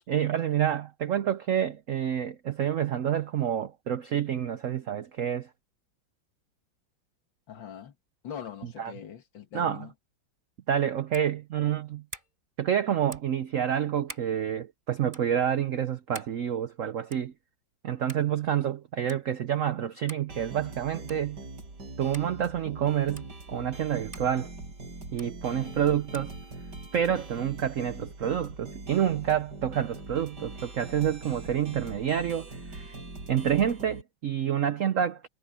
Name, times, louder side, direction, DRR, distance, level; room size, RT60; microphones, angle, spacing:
voice 1, 0.1-5.5 8.8-8.9 9.5-9.8 10.7-12.0 12.6-17.3 17.8-21.4 22.0-24.5 25.1-26.3 26.9-32.9 33.3-35.3, right 9 dB, 75° right, 0.7 m, -28 dB
voice 2, 7.5-8.0 8.2-9.9 25.5-25.8, left 8 dB, 65° left, 2.3 m, -42 dB
sound 1, 11.1-11.3 12.1-12.3 13.1-13.4 14.1-14.3 15.1-15.3 16.1-16.4 17.1-17.3 18.1-18.3 19.1-19.2 20.1-20.3 21.1-21.3 22.1-22.3 23.2-23.3 24.1-24.3 25.2-25.3 26.1-26.3, right 1 dB, 25° right, 4.7 m, -45 dB
sound 2, 20.3-34.0, right 2 dB, 55° right, 6.3 m, -42 dB
omnidirectional pair, 2.2 m